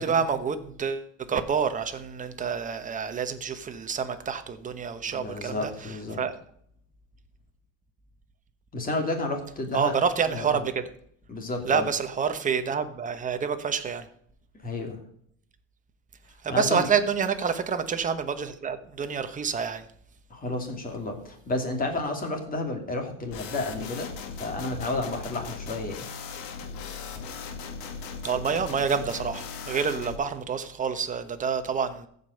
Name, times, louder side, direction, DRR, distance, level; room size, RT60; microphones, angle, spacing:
voice 1, 0.0-6.3 9.7-10.7 11.6-14.0 16.4-19.8 28.2-32.1, right 6 dB, 20° right, 9 dB, 1.1 m, -28 dB
voice 2, 5.1-6.2 8.7-9.9 10.3-10.5 11.3-11.9 14.6-15.0 16.5-16.9 20.3-26.0, left 2 dB, 25° left, 3 dB, 2.7 m, -31 dB
sound 1, 23.3-30.2, left 5 dB, 70° left, 2.1 m, -38 dB
15.0 x 5.5 x 6.5 m, 0.66 s
cardioid pair, 150°, 36 cm